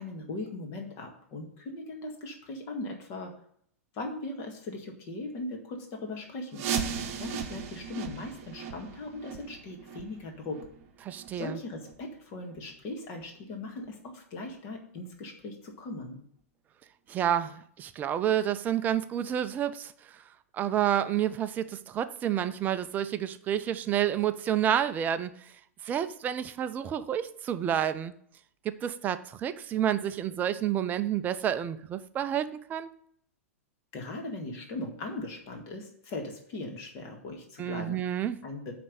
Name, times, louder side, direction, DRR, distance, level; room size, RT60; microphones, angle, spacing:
voice 1, 0.0-3.3 3.9-6.6 7.2-10.6 11.3-16.2 33.9-38.0 38.4-38.7, left 2 dB, 35° left, 3 dB, 1.7 m, -39 dB
sound 1, 6.5-12.1 12.5-12.6 13.1-13.2 13.8-13.9 14.5-14.6, right 7 dB, 35° right, 0.9 m, -37 dB
voice 2, 11.0-11.6 17.1-20.2 20.5-25.5 25.8-28.1 28.6-32.9 37.6-38.4, right 10 dB, 20° right, 12 dB, 0.5 m, -29 dB
9.2 x 3.4 x 6.8 m, 0.64 s
figure-of-eight pair, 100°, 8 cm